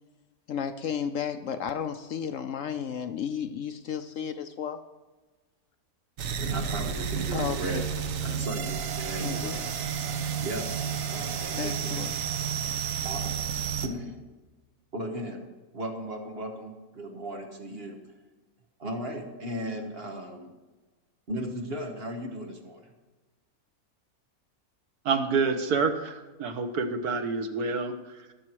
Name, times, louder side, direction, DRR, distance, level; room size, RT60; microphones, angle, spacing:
voice 1, 0.5-4.8 7.3-7.8 9.2-9.6 11.5-12.1, left 8 dB, 65° left, 9 dB, 0.9 m, -33 dB
double glitch violence, 6.2-13.9, right 7 dB, 65° right, 1.3 m, -31 dB
voice 2, 6.4-7.9 8.2-9.7 10.4-10.7 11.1-12.1 13.0-13.3 13.8-14.2 14.9-15.5 15.7-18.0 18.8-20.5 21.3-22.9, right 1 dB, 40° right, 3 dB, 1.7 m, -36 dB
voice 3, 25.0-28.3, right 4 dB, 90° right, 7 dB, 1.6 m, -28 dB
18.5 x 7.2 x 4.6 m, 1.2 s
omnidirectional pair, 1.6 m